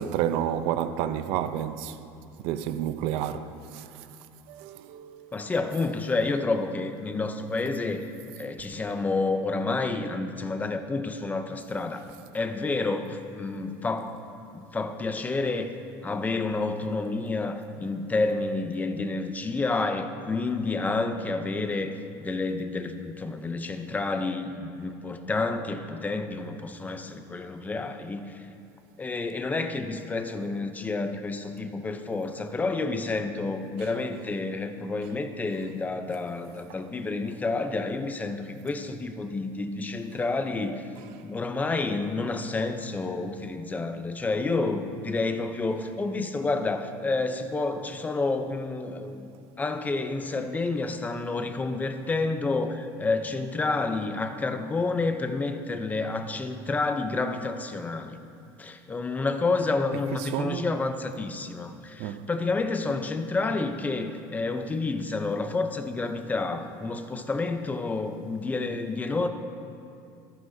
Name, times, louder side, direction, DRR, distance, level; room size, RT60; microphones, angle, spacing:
voice 1, 0.0-2.0 2.4-4.1 4.5-5.5 33.8-34.0 36.7-36.8 41.0-41.2 59.9-60.8 62.0-62.3, right 10 dB, 75° right, 0.6 m, -31 dB
voice 2, 5.3-8.1 8.4-12.1 12.3-14.2 14.5-15.7 16.0-28.4 29.0-40.9 41.2-49.3 49.6-58.2 58.6-69.3, left 3 dB, 15° left, 0.6 m, -29 dB
14.5 x 14.0 x 2.7 m
cardioid pair, 140°, 10 cm